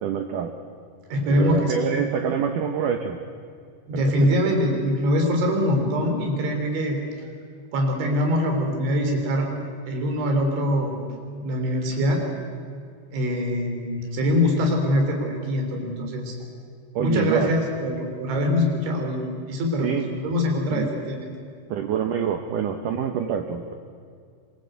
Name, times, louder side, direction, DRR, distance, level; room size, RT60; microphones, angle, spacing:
voice 1, 0.0-0.5 1.3-3.2 3.9-4.0 4.5-4.6 17.0-17.6 19.8-20.1 20.7-20.9 21.7-23.7, right 7 dB, 70° right, 6 dB, 2.0 m, -26 dB
voice 2, 1.1-1.9 3.9-7.0 7.7-9.5 9.9-11.0 11.4-12.2 13.1-16.4 17.0-21.3, left 1 dB, 85° right, 2 dB, 6.3 m, -23 dB
26.5 x 24.5 x 8.3 m, 2.2 s
omnidirectional pair, 5.2 m